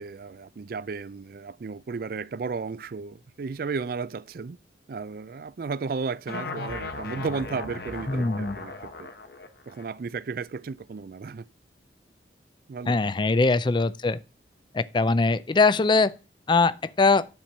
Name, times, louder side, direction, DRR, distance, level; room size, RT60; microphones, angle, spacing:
voice 1, 0.0-4.6 4.9-9.1 9.7-11.5 12.7-13.0, right 4 dB, 50° right, 0.4 m, -34 dB
sound 1, 6.3-9.8, left 3 dB, 55° left, 1.1 m, -37 dB
voice 2, 8.1-8.6 12.9-14.2 14.7-16.1 16.5-17.3, left 3 dB, 25° left, 0.4 m, -22 dB
10.0 x 4.5 x 6.4 m
head